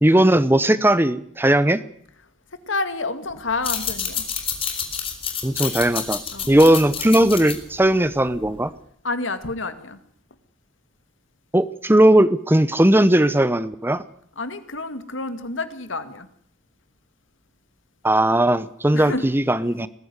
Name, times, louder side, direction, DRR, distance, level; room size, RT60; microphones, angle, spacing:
voice 1, 0.0-1.8 5.4-6.2 6.5-8.7 11.5-14.0 18.0-19.9, right 1 dB, 10° right, 14 dB, 0.9 m, -18 dB
voice 2, 2.7-4.2 6.3-6.5 9.0-10.0 14.4-16.3 18.9-19.3, left 3 dB, 80° left, 10 dB, 2.2 m, -29 dB
sound 1, 3.5-8.7, left 7 dB, 30° left, 3.9 m, -29 dB
20.5 x 15.5 x 9.8 m, 0.65 s
head